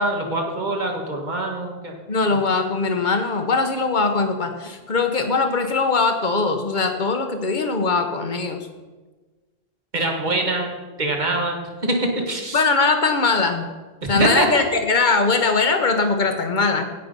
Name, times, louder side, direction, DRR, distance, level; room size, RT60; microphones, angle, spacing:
voice 1, 0.0-2.0 2.3-2.4 9.9-12.6 14.0-14.6, right 2 dB, 45° right, 2 dB, 1.8 m, -24 dB
voice 2, 2.1-8.7 12.5-13.7 14.1-16.8, left 4 dB, 50° left, 6 dB, 1.2 m, -21 dB
16.5 x 5.7 x 5.3 m, 1.3 s
omnidirectional pair, 1.0 m